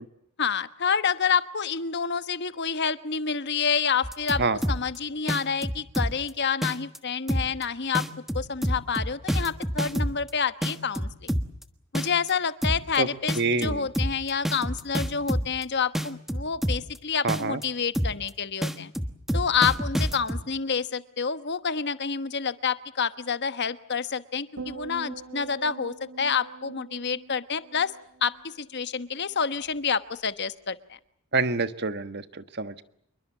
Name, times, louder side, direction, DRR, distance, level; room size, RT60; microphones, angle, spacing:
voice 1, 0.4-4.4 4.7-8.0 8.3-11.3 11.9-18.9 19.3-27.9 28.2-31.0, left 6 dB, 50° left, 13 dB, 1.2 m, -28 dB
sound 1, 4.0-5.0 5.3-6.3 6.6-7.0 7.3-7.6 7.9-10.3 10.6-11.6 11.9-12.3 12.6-13.0 13.3-15.6 15.9-17.0 17.3-17.6 17.9-18.3 18.6-20.4, equal, ahead, 1.3 m, -27 dB
voice 2, 13.4-13.9 17.2-17.6 31.3-32.8, right 3 dB, 50° right, 11 dB, 1.5 m, -27 dB
sound 2, 24.6-29.0 29.3-29.7, right 4 dB, 80° right, 1.5 m, -43 dB
27.5 x 23.0 x 7.3 m, 0.69 s
head